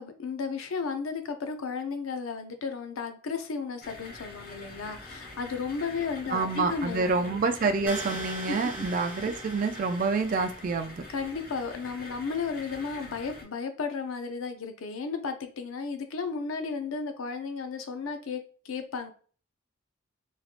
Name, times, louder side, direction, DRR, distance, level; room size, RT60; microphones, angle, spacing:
voice 1, 0.0-7.0 8.5-8.6 11.1-19.1, left 5 dB, 85° left, 7 dB, 0.5 m, -34 dB
sound 1, 3.8-13.4, left 2 dB, 45° left, 1.0 m, -45 dB
voice 2, 6.3-11.0, right 4 dB, 40° right, 7 dB, 0.3 m, -27 dB
sound 2, 7.9-10.8, right 1 dB, 5° right, 0.9 m, -40 dB
3.1 x 2.7 x 2.4 m, 0.41 s
head